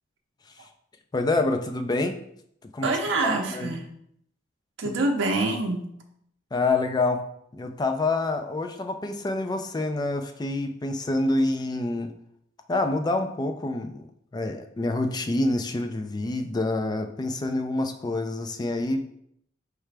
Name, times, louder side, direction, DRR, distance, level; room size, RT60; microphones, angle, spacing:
voice 1, 1.1-2.2 2.7-2.9 3.2-3.7 4.8-4.9 6.5-7.2 7.5-12.1 12.7-19.0, left 2 dB, 20° left, 6 dB, 0.4 m, -27 dB
voice 2, 2.8-3.8 4.8-5.9, right 2 dB, 70° right, 2 dB, 0.6 m, -25 dB
4.8 x 3.3 x 3.3 m, 0.71 s
head